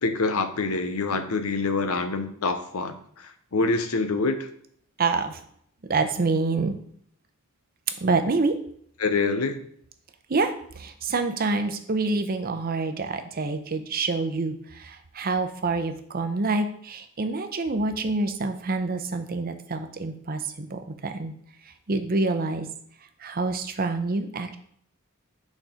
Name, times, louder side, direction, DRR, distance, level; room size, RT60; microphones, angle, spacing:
voice 1, 0.0-4.5 9.0-9.6, left 3 dB, 90° left, 8 dB, 0.8 m, -26 dB
voice 2, 5.0-5.4 5.9-6.8 8.0-8.5 10.3-21.3 21.9-22.7 23.2-24.6, right 3 dB, 45° right, 8 dB, 0.7 m, -27 dB
6.2 x 4.3 x 5.0 m, 0.65 s
head